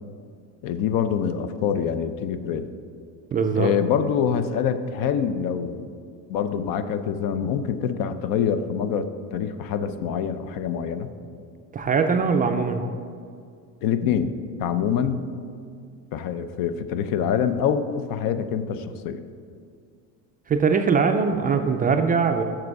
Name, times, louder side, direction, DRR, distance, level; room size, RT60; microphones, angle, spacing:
voice 1, 0.6-2.7 3.5-5.9 6.3-11.1 13.8-15.2 16.1-19.2, left 8 dB, 65° left, 11 dB, 0.6 m, -25 dB
voice 2, 3.3-3.8 11.7-12.8 20.5-22.4, right 5 dB, 25° right, 6 dB, 0.3 m, -21 dB
7.6 x 6.0 x 4.7 m, 2.2 s
cardioid pair, 120°, 38 cm